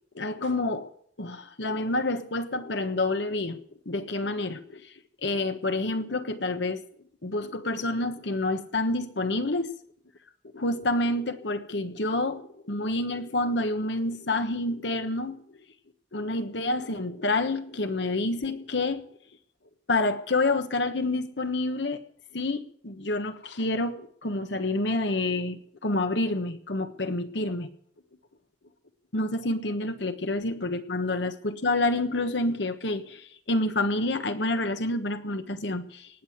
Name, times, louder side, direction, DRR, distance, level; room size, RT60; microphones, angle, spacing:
voice 1, 0.1-0.9 1.2-4.8 5.2-6.8 7.2-9.7 10.5-15.4 16.1-19.1 19.9-22.0 22.3-27.7 29.1-36.1, left 2 dB, 70° left, 9 dB, 1.3 m, -28 dB
18.5 x 7.6 x 8.0 m, 0.64 s
head